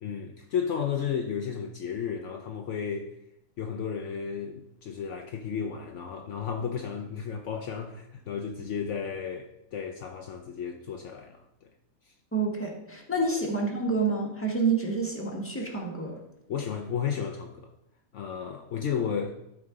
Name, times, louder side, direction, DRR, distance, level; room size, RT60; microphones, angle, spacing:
voice 1, 0.0-3.1 3.6-11.7 12.1-12.2 13.2-13.3 16.5-17.7 18.1-19.3, left 7 dB, 65° left, 0.9 m, -33 dB
voice 2, 12.3-16.2, right 3 dB, 10° left, 1.6 m, -28 dB
12.5 x 4.7 x 3.7 m
omnidirectional pair, 1.4 m